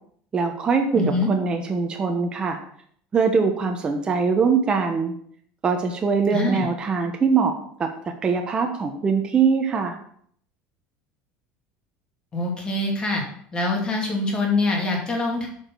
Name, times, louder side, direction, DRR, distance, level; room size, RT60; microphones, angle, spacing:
voice 1, 0.3-2.6 3.1-5.1 5.6-7.9 8.2-10.0, right 5 dB, 20° right, 4 dB, 1.0 m, -22 dB
voice 2, 0.9-1.3 6.3-6.7 12.3-13.2 13.5-15.5, left 2 dB, 20° left, 0 dB, 2.5 m, -24 dB
8.8 x 5.1 x 6.1 m, 0.63 s
cardioid pair, 150°, 4 cm